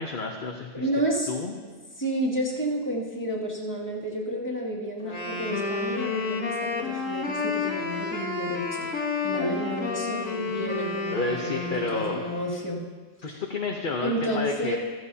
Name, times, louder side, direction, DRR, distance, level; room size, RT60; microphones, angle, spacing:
voice 1, 0.0-0.9 1.3-1.5 11.1-12.2 13.2-14.8, left 3 dB, 45° left, 1 dB, 0.9 m, -30 dB
voice 2, 0.7-1.3 2.0-8.9 9.2-12.8 13.3-13.4 14.0-14.8, right 1 dB, 15° left, -6 dB, 2.2 m, -30 dB
Wind instrument woodwind instrument, 5.0-12.7, left 4 dB, 70° left, 1.8 m, -31 dB
15.5 x 14.5 x 2.8 m, 1.5 s
omnidirectional pair, 1.4 m